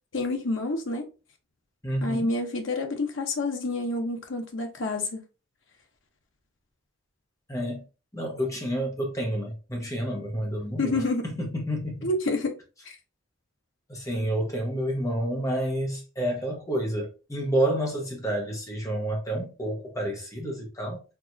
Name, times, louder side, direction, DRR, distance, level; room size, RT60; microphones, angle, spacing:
voice 1, 0.1-1.1 2.0-5.2 10.8-11.3 12.0-12.6 12.9-13.0, left 2 dB, 70° left, 0.9 m, -28 dB
voice 2, 1.8-2.3 7.5-7.8 8.1-11.0 11.3-12.1 13.9-21.0, right 1 dB, 15° left, 1.0 m, -29 dB
4.5 x 3.0 x 2.7 m
head